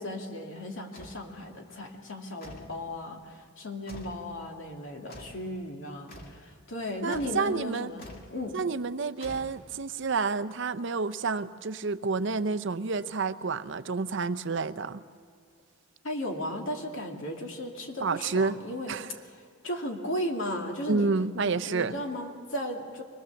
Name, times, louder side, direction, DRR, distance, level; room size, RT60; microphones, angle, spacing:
voice 1, 0.0-8.6 16.0-19.0 19.6-21.1 21.4-23.0, left 1 dB, 65° left, 2 dB, 2.6 m, -36 dB
sound 1, 0.9-1.3 2.4-2.8 3.9-4.3 5.1-5.5 6.1-6.4 7.1-7.5 8.0-8.4 9.2-9.8, left 1 dB, 45° left, 2.2 m, -46 dB
voice 2, 7.0-7.9 8.5-15.0 18.0-18.6 18.9-19.1 20.9-21.9, right 4 dB, 60° right, 12 dB, 0.6 m, -29 dB
24.0 x 20.0 x 7.1 m, 2.2 s
head